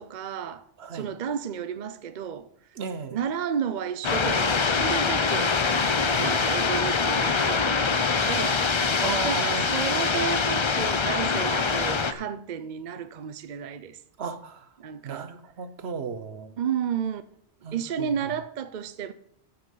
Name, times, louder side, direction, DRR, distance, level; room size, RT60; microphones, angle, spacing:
voice 1, 0.0-0.6 0.9-2.5 3.1-5.6 6.2-8.6 9.2-14.0 14.8-15.3 16.6-17.2 17.7-19.1, right 8 dB, 50° right, 0.7 m, -32 dB
voice 2, 0.8-1.1 2.8-3.2 6.1-6.4 9.0-9.7 14.2-14.7 15.0-16.5 17.6-18.1, right 5 dB, 65° right, 1.1 m, -34 dB
sound 1, 4.0-12.1, left 4 dB, 35° left, 0.5 m, -24 dB
14.5 x 5.8 x 5.6 m
omnidirectional pair, 1.1 m